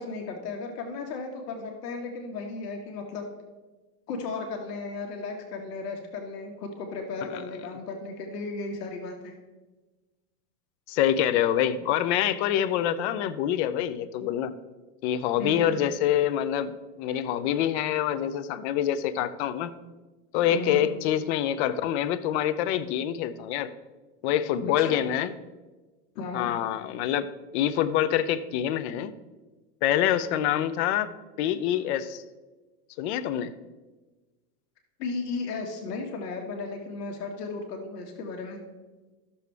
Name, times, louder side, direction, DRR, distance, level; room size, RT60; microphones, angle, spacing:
voice 1, 0.0-3.3 4.1-9.3 15.4-15.7 20.5-20.9 24.8-25.2 26.2-26.5 35.0-38.6, left 3 dB, 70° left, 3 dB, 1.7 m, -35 dB
voice 2, 10.9-14.5 15.0-19.8 20.3-23.7 24.2-25.3 26.3-29.1 29.8-31.1 31.4-32.2 33.0-33.5, left 10 dB, 45° left, 12 dB, 0.6 m, -26 dB
13.0 x 6.9 x 3.4 m, 1.2 s
supercardioid pair, 140°, 48 cm